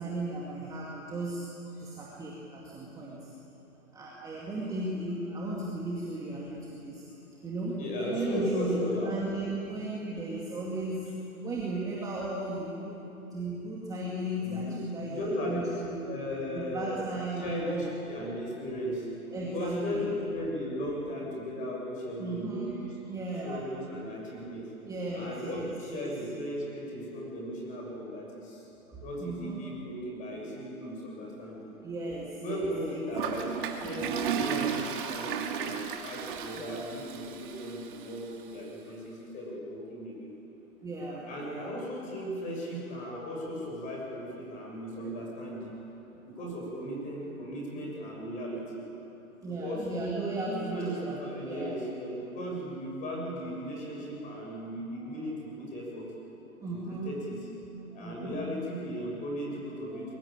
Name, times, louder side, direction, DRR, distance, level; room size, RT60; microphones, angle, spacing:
voice 1, 0.0-3.3 3.9-7.0 7.4-13.0 13.3-16.1 16.5-17.9 19.3-20.1 22.2-22.7 23.1-23.6 24.8-26.0 28.8-29.7 30.8-30.9 31.8-33.0 36.5-36.8 38.8-38.9 40.8-41.7 44.9-45.1 49.4-51.1 51.4-51.7 54.0-54.3 55.0-55.1 56.6-57.1 57.9-58.6 59.9-60.1, right 2 dB, 10° right, -4 dB, 2.3 m, -36 dB
voice 2, 7.8-9.2 9.7-9.8 14.4-14.7 15.1-17.0 17.4-19.1 19.4-23.0 23.4-24.7 25.1-28.7 29.0-31.7 32.4-40.3 41.2-45.7 46.3-48.8 49.5-49.9 50.4-56.1 56.7-57.4 58.0-60.2, equal, 15° left, -2 dB, 6.8 m, -36 dB
Toilet flush, 33.1-38.2, right 7 dB, 35° right, 2.4 m, -34 dB
23.5 x 23.0 x 9.0 m, 2.9 s
hypercardioid pair, 145°, 43 cm